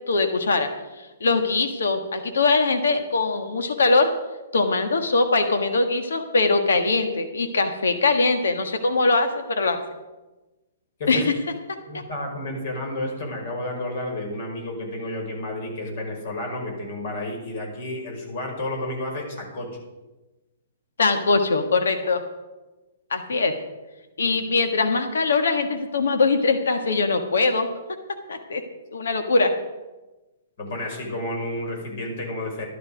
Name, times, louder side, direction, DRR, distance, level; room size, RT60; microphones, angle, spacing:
voice 1, 0.1-0.7 1.2-4.1 4.5-9.8 11.1-11.3 21.0-22.2 23.1-23.5 24.2-27.7 28.3-28.6 28.9-29.5, left 3 dB, 80° left, 6 dB, 1.6 m, -22 dB
voice 2, 11.9-19.7 24.2-24.3 30.6-32.6, left 1 dB, 55° left, 2 dB, 5.4 m, -31 dB
13.0 x 12.0 x 5.1 m, 1.1 s
hypercardioid pair, 125°, 0 cm